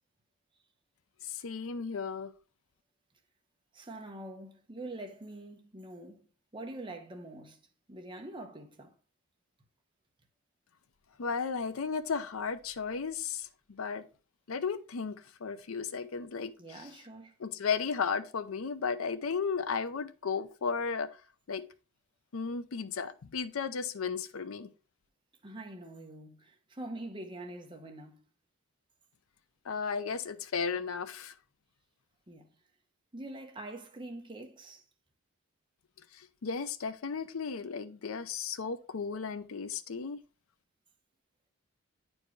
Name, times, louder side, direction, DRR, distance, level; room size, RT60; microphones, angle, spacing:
voice 1, 1.2-2.3 11.2-13.5 13.8-14.0 14.5-16.5 17.4-21.1 21.5-21.7 22.3-24.7 29.7-31.3 36.2-40.2, left 5 dB, 70° left, 0.5 m, -34 dB
voice 2, 3.7-6.3 6.5-7.6 7.9-8.9 16.6-17.3 25.4-28.2 32.3-32.5 33.1-34.8, right 1 dB, 20° right, 0.9 m, -44 dB
9.7 x 4.5 x 3.1 m
head